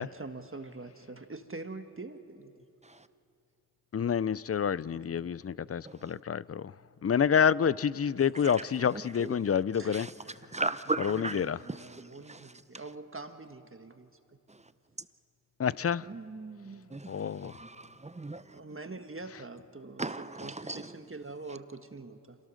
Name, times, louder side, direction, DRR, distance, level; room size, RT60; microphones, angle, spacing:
voice 1, 0.0-2.6 4.8-5.3 9.8-10.0 11.4-14.1 16.0-17.0 18.5-20.0 20.4-22.4, right 3 dB, 35° right, 1.4 m, -44 dB
voice 2, 3.9-6.7 7.0-10.1 11.0-11.6 15.6-16.1 17.1-17.5, left 7 dB, 40° left, 0.5 m, -28 dB
voice 3, 5.8-6.2 8.4-12.8 14.5-14.7 15.0-15.1 16.9-18.8 20.0-21.0 21.5-21.6, right 2 dB, 20° right, 0.7 m, -38 dB
27.0 x 17.5 x 6.5 m
cardioid pair, 45°, 37 cm